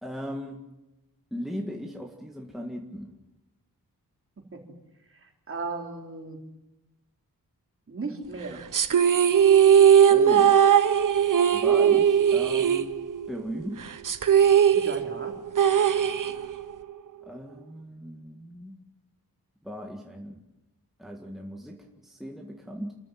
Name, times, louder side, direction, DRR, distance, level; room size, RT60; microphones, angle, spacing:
voice 1, 0.0-0.6 1.3-3.1 10.1-10.6 11.5-12.9 13.3-13.8 17.2-18.8 19.6-20.4 21.0-23.0, equal, ahead, 0 dB, 1.9 m, -37 dB
voice 2, 5.5-6.4 7.9-8.6 14.7-15.3, right 3 dB, 35° right, 2 dB, 3.9 m, -35 dB
sound 1, 8.7-13.4 13.6-13.7 14.0-16.7, right 8 dB, 60° right, 1.1 m, -19 dB
28.5 x 14.5 x 9.3 m, 1.0 s
wide cardioid pair, 180°, 35 cm